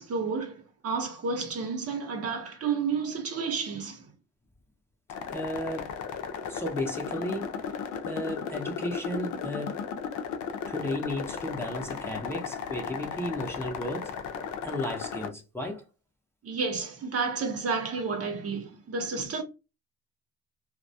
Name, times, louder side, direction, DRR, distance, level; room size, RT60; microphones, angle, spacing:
voice 1, 0.0-4.0 16.4-19.4, right 5 dB, 50° right, 0.8 m, -31 dB
sound 1, 5.1-15.3, left 7 dB, 75° left, 0.6 m, -35 dB
voice 2, 5.3-6.0 6.5-7.7 8.0-9.8 10.7-14.1 14.6-15.9, left 1 dB, 10° left, 0.7 m, -34 dB
2.3 x 2.1 x 2.7 m
cardioid pair, 90°, 30 cm